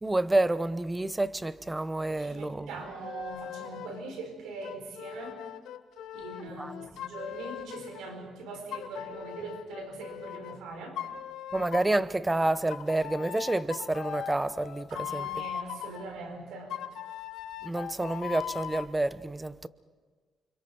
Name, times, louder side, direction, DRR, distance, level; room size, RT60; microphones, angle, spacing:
voice 1, 0.0-2.7 6.6-6.7 11.5-15.3 17.6-19.7, right 2 dB, 15° right, 0.9 m, -29 dB
voice 2, 2.1-5.5 6.1-11.0 14.9-16.8, right 3 dB, 85° right, 4.6 m, -41 dB
sound 1, 3.0-4.0 4.6-8.0 8.7-10.6 11.0-12.0 12.7-16.0 16.7-18.9, left 10 dB, 85° left, 1.0 m, -40 dB
29.5 x 25.5 x 4.6 m
cardioid pair, 90°, 0 cm